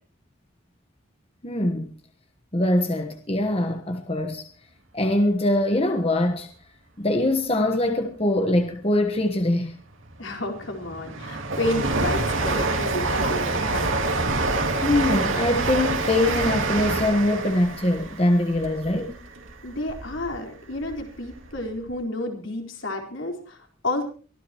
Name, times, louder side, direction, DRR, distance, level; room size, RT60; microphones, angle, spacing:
voice 1, 1.4-1.9 2.5-4.5 4.9-6.5 7.0-9.8 14.8-19.2, left 1 dB, 30° left, 1.3 m, -23 dB
Train, 10.1-20.3 20.7-21.6 21.9-22.0, right 3 dB, 75° right, 3.0 m, -27 dB
voice 2, 10.2-14.0 19.6-24.1, left 1 dB, 70° left, 4.2 m, -31 dB
24.0 x 15.0 x 3.0 m
head